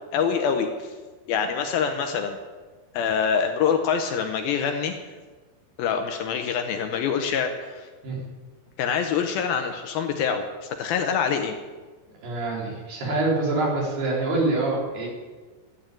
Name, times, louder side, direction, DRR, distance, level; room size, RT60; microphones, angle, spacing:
voice 1, 0.1-0.9 1.3-2.4 2.9-5.0 5.8-7.9 8.8-11.6, left 6 dB, 75° left, 6 dB, 2.4 m, -25 dB
voice 2, 12.2-15.1, right 2 dB, 70° right, -3 dB, 5.5 m, -25 dB
13.0 x 8.7 x 8.9 m, 1.4 s
omnidirectional pair, 4.8 m